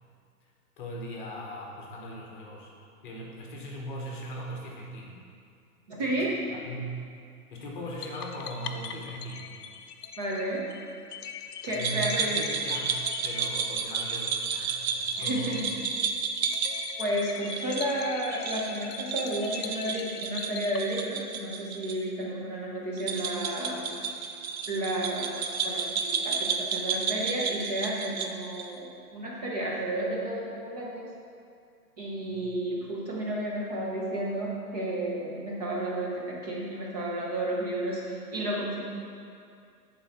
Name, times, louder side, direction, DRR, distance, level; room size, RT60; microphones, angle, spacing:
voice 1, 0.8-2.7 3.0-5.2 6.0-6.1 6.5-7.0 7.5-9.5 11.6-15.6 32.3-32.5, right 1 dB, 35° left, -2 dB, 1.1 m, -39 dB
voice 2, 5.9-6.4 10.2-10.7 11.6-12.4 15.2-15.7 17.0-24.3 24.7-31.1 32.0-38.8, right 1 dB, 25° right, -4 dB, 0.8 m, -32 dB
sound 1, 8.0-21.5, left 7 dB, 85° left, 0.6 m, -42 dB
sound 2, 11.8-22.0 22.2-22.3 23.0-28.7, right 6 dB, 60° right, 0.8 m, -32 dB
10.0 x 4.0 x 4.3 m, 2.4 s
hypercardioid pair, 155°, 46 cm